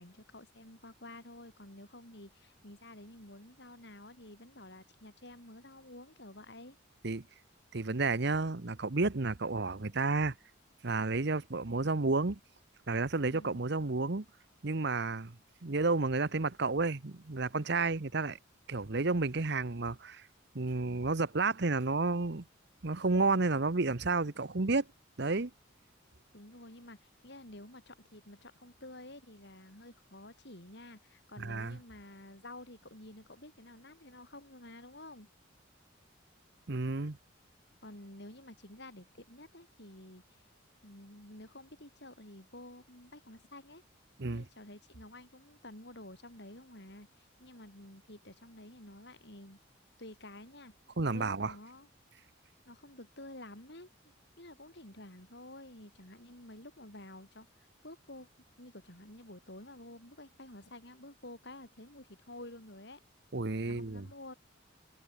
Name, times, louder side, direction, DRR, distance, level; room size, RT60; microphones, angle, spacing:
voice 1, 0.0-6.8 13.2-13.6 26.3-35.3 37.8-40.4 40.8-43.8 44.3-49.6 50.0-50.7 51.1-51.9 52.7-53.9 54.4-58.3 58.6-63.0 63.7-64.3, left 1 dB, 55° left, 7.3 m, -51 dB
voice 2, 7.7-10.3 10.8-12.4 12.9-14.2 14.6-15.3 15.6-18.4 18.7-20.2 20.5-22.4 22.8-24.9 25.2-25.5 31.4-31.8 36.7-37.2 44.2-44.4 51.0-51.5 63.3-64.1, right 3 dB, 55° right, 1.0 m, -31 dB
head